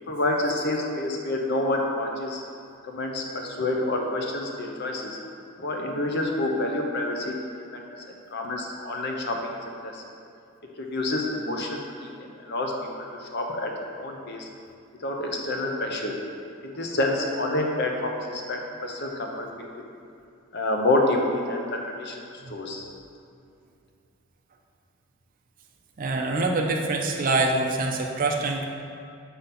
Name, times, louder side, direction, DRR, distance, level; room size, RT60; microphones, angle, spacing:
voice 1, 0.1-2.4 2.8-5.2 5.6-7.3 7.7-7.8 8.3-9.6 9.8-10.0 10.8-12.7 13.0-13.7 14.0-14.5 15.0-16.1 16.6-19.7 20.5-22.2 22.5-22.8, left 2 dB, 50° left, 1 dB, 0.7 m, -28 dB
voice 2, 26.0-28.7, right 2 dB, 40° right, 1 dB, 0.4 m, -25 dB
6.7 x 3.9 x 4.1 m, 2.5 s
head